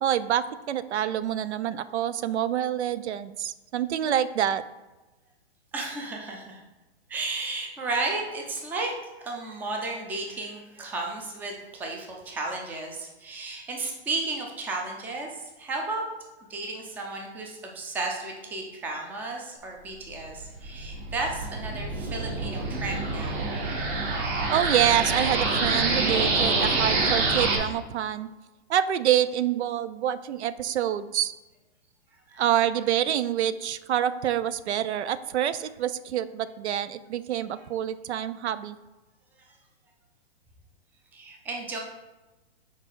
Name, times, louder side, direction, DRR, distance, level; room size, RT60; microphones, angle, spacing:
voice 1, 0.0-4.6 24.5-28.3 28.7-31.3 32.4-38.8, right 10 dB, 80° right, 15 dB, 0.5 m, -26 dB
voice 2, 5.7-6.6 7.1-8.9 9.2-16.0 16.5-23.5 32.3-32.4 39.4-39.5 41.1-41.8, right 3 dB, 5° right, 1 dB, 0.4 m, -33 dB
sound 1, 20.2-27.6, right 3 dB, 50° right, 1.7 m, -26 dB
6.3 x 4.1 x 3.9 m, 1.1 s
hypercardioid pair, 140°, 34 cm